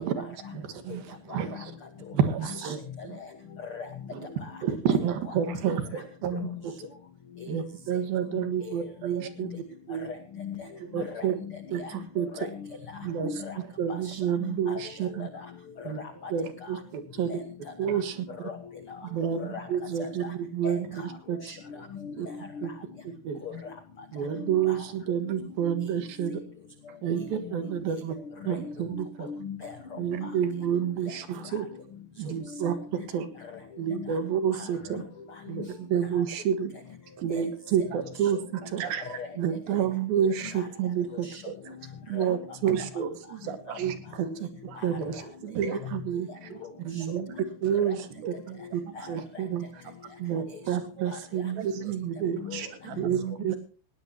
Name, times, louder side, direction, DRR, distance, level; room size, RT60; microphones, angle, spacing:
voice 1, 0.0-1.7 2.1-2.8 3.0-3.2 4.1-4.2 4.6-6.7 7.5-9.5 9.9-10.1 10.9-11.3 11.7-12.3 13.0-15.3 15.8-16.0 16.3-17.4 17.8-18.3 19.1-21.4 22.1-22.3 22.6-22.7 23.2-23.4 24.1-26.4 27.0-28.2 28.4-29.3 30.0-31.7 32.2-33.3 33.8-35.0 35.5-36.7 37.2-38.8 39.4-41.3 42.1-43.0 43.8-44.5 44.8-46.5 46.8-47.3 47.6-48.8 49.1-49.8 50.2-52.4 53.0-53.6, right 8 dB, 65° right, 9 dB, 3.2 m, -29 dB
voice 2, 2.4-3.3 3.6-3.9 4.2-4.6 5.3-5.6 6.3-6.6 7.4-7.5 8.3-8.8 9.4-9.6 10.1-10.6 11.0-12.0 12.4-13.6 13.9-15.3 15.8-15.9 16.2-16.3 17.3-17.4 18.4-18.6 18.9-19.0 19.4-19.7 20.0-20.1 20.6-21.2 21.4-21.6 21.9-22.7 23.4-23.7 24.3-24.8 25.2-25.8 26.2-26.4 28.4-30.3 30.7-30.9 31.5-31.6 32.4-33.0 33.9-34.1 34.5-35.0 35.5-35.7 37.3-37.5 39.2-39.3 40.5-40.7 41.2-41.4 41.7-41.8 42.2-42.3 43.7-43.8 44.3-44.4 44.8-44.9 46.6-47.4 47.8-47.9 48.9-49.2 52.4-52.6, left 6 dB, 65° left, 6 dB, 1.3 m, -40 dB
voice 3, 38.8-39.2 41.5-41.6 42.7-44.0 44.7-44.8 45.4-45.9 46.5-46.6 47.6-47.7 48.1-48.4 49.0-49.1 49.8-50.1 51.5-52.0 52.5-53.1, right 8 dB, 90° right, 8 dB, 4.1 m, -38 dB
19.0 x 17.0 x 2.9 m, 0.37 s
omnidirectional pair, 4.8 m